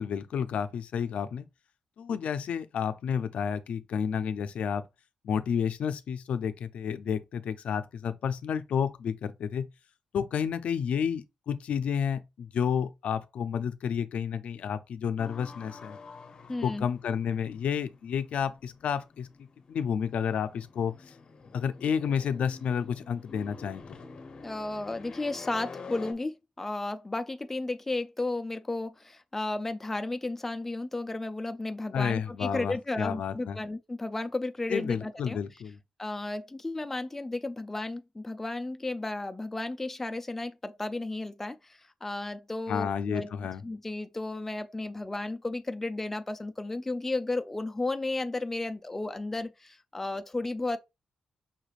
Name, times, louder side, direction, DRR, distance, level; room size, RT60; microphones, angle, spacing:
voice 1, 0.0-1.5 2.0-4.8 5.2-9.7 10.1-16.0 16.6-19.3 19.7-21.1 21.5-24.0 31.9-33.6 34.7-35.8 42.7-43.6, left 7 dB, 75° left, 0.4 m, -31 dB
sound 1, 15.2-26.1, left 4 dB, 45° left, 0.7 m, -48 dB
voice 2, 16.5-16.8 24.4-35.4 36.0-43.3 43.6-50.8, left 2 dB, 10° left, 0.4 m, -33 dB
5.6 x 3.2 x 2.4 m
wide cardioid pair, 140°, 2 cm